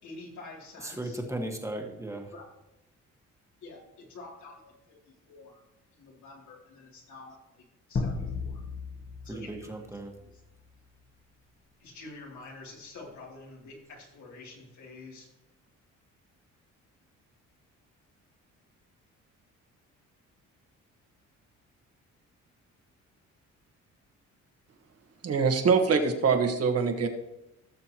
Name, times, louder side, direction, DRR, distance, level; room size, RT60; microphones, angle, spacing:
voice 1, 0.0-1.2 2.1-2.5 3.6-5.0 5.3-5.6 6.0-7.6 7.9-8.6 9.2-9.8 10.1-10.4 11.8-15.3, left 3 dB, 70° left, -2 dB, 3.0 m, -48 dB
voice 2, 0.8-2.3 9.3-10.1, right 1 dB, 10° right, 2 dB, 1.6 m, -36 dB
sound 1, 7.9-10.5, left 4 dB, 40° left, 1.6 m, -35 dB
voice 3, 25.2-27.1, right 5 dB, 50° right, 5 dB, 1.6 m, -24 dB
17.0 x 6.8 x 3.0 m, 0.91 s
cardioid pair, 90°, 30 cm